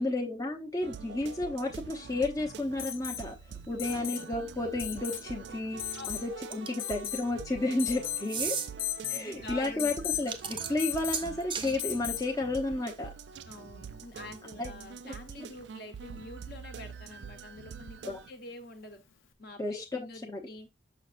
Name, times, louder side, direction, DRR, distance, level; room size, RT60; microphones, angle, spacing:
voice 1, 0.0-3.3 3.7-5.8 6.1-8.6 9.1-13.1 14.6-14.7 15.4-15.5 18.1-18.2 19.6-20.4, left 2 dB, 15° left, 0.7 m, -32 dB
sound 1, 0.8-18.3, right 6 dB, 60° right, 0.4 m, -45 dB
Alarm, 2.8-3.3 3.8-4.3 4.8-5.2 5.8-6.3 6.8-7.3 7.8-8.3 8.8-9.3 9.8-10.3 10.8-11.3 11.8-12.3 14.0-14.1, left 13 dB, 80° left, 0.9 m, -36 dB
voice 2, 6.0-6.6 6.9-7.0 9.1-9.9 13.5-19.0 19.4-20.7, left 2 dB, 50° left, 1.2 m, -46 dB
sound 2, 6.5-6.9 8.2-8.7 10.1-11.7, right 6 dB, 25° right, 0.7 m, -34 dB
6.4 x 6.3 x 2.5 m
head